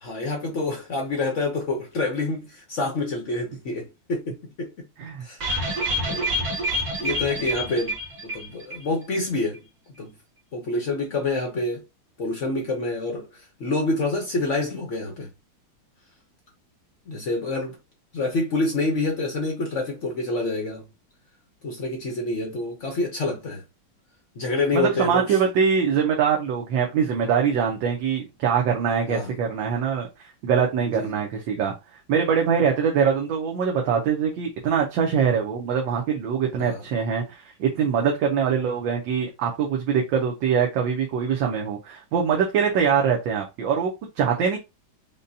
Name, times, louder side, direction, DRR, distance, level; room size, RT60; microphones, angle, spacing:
voice 1, 0.0-4.9 5.2-5.4 5.7-6.4 7.0-7.9 8.2-9.6 10.0-10.1 10.5-11.8 12.2-15.3 17.1-17.8 18.1-20.9 21.6-23.6 24.4-25.4 29.1-29.3 30.8-31.1 36.6-36.8 44.3-44.4, left 2 dB, 60° left, 0.8 m, -27 dB
sound 1, 5.4-8.9 9.1-9.2 9.5-9.6, equal, 45° right, 1.8 m, -27 dB
voice 2, 24.7-31.7 32.1-44.6, right 7 dB, 70° right, 1.4 m, -23 dB
5.2 x 2.2 x 2.6 m
omnidirectional pair, 2.2 m